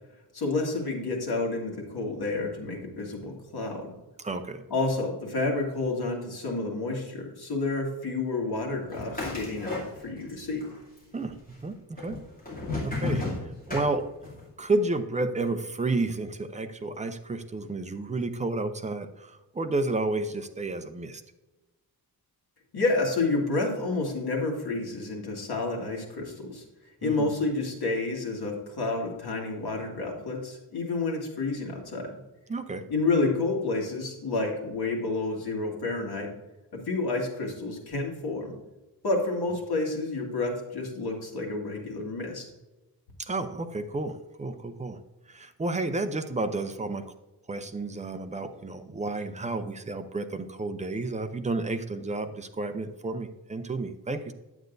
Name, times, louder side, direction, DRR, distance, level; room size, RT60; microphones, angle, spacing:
voice 1, 0.3-3.9 4.7-10.7 22.7-26.6 27.0-32.2 32.9-36.3 36.7-38.6 39.0-42.5, left 3 dB, 75° left, 0 dB, 2.1 m, -29 dB
voice 2, 4.2-4.6 11.1-12.2 12.8-13.3 13.7-14.0 14.6-21.2 27.0-27.3 32.5-32.9 43.2-45.0 45.3-47.0 47.5-54.3, right 2 dB, 20° right, 7 dB, 0.5 m, -31 dB
sound 1, 8.9-10.3 10.6-11.3 12.0-14.4, left 3 dB, 20° left, 2.7 m, -33 dB
9.6 x 8.0 x 2.6 m, 1.1 s
wide cardioid pair, 165°, 38 cm